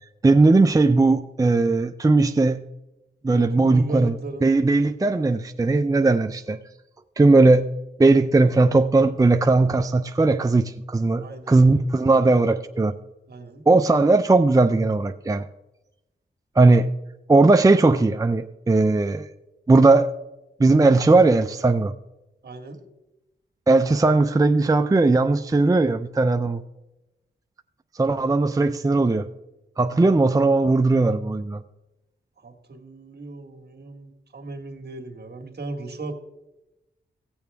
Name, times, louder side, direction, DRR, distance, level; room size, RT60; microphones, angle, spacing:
voice 1, 0.2-2.6 3.2-4.1 4.4-6.6 7.2-7.7 8.0-12.9 13.7-15.4 16.6-16.9 17.3-19.3 19.7-20.1 20.6-21.9 23.7-26.6 28.0-29.2 29.8-31.6, right 3 dB, 20° right, 8 dB, 0.5 m, -18 dB
voice 2, 3.3-4.5 11.2-11.8 13.3-13.6 22.4-22.8 32.4-36.1, right 2 dB, 60° right, 4 dB, 1.6 m, -37 dB
16.5 x 7.0 x 3.5 m, 0.97 s
cardioid pair, 55°, 19 cm